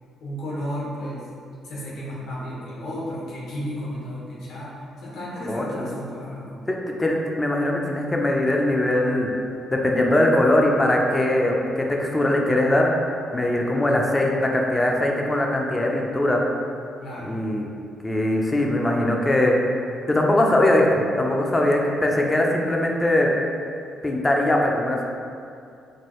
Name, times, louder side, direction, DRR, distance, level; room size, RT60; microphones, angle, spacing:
voice 1, 0.2-1.2 1.6-6.6 17.0-17.4, equal, 75° left, -6 dB, 1.0 m, -33 dB
voice 2, 5.5-5.9 6.7-9.3 9.7-12.9 13.3-16.4 17.2-17.7 18.0-19.6 19.8-23.3 24.0-25.0, left 1 dB, 20° left, 0 dB, 0.5 m, -21 dB
4.5 x 2.3 x 3.0 m, 2.4 s
cardioid pair, 90°, 0 cm